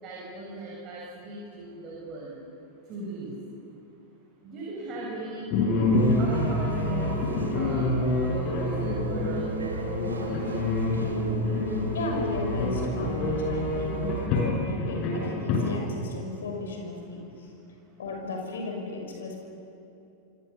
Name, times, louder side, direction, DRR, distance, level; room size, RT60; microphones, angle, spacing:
voice 1, 0.0-2.3 2.9-3.3 4.4-5.5 6.2-7.1 7.5-10.6, right 2 dB, 35° right, -4 dB, 7.4 m, -38 dB
sound 1, 5.5-15.6, left 2 dB, 40° left, 7.6 m, -27 dB
sound 2, 5.9-14.3, right 3 dB, 75° right, 2.6 m, -36 dB
voice 2, 11.9-14.0 14.3-17.5 18.0-19.4, left 3 dB, 65° left, 2 dB, 6.1 m, -35 dB
28.5 x 24.0 x 7.1 m, 2.8 s
figure-of-eight pair, 90°, 0 cm